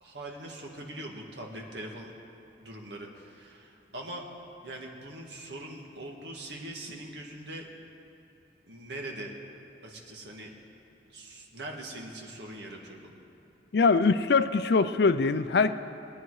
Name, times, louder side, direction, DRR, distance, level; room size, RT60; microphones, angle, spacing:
voice 1, 0.0-2.1 2.6-4.3 4.6-7.7 8.7-9.3 9.8-10.5 11.0-13.1, right 1 dB, 65° right, 0 dB, 1.8 m, -42 dB
voice 2, 13.7-15.8, left 4 dB, 60° left, 11 dB, 0.5 m, -23 dB
21.0 x 9.8 x 4.8 m, 3.0 s
head